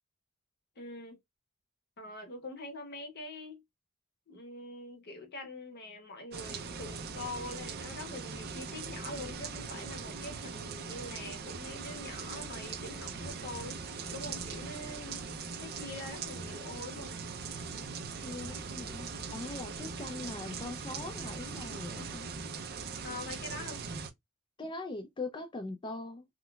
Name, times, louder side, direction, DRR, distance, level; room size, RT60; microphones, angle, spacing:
voice 1, 0.8-1.2 2.0-3.6 4.3-13.8 14.1-15.3 15.6-17.2 23.0-23.8, left 2 dB, 50° left, 0.9 m, -44 dB
sound 1, 6.3-24.1, right 5 dB, 50° right, 0.5 m, -41 dB
voice 2, 18.2-22.3 24.6-26.3, left 2 dB, 20° left, 0.4 m, -41 dB
3.8 x 2.1 x 2.3 m
head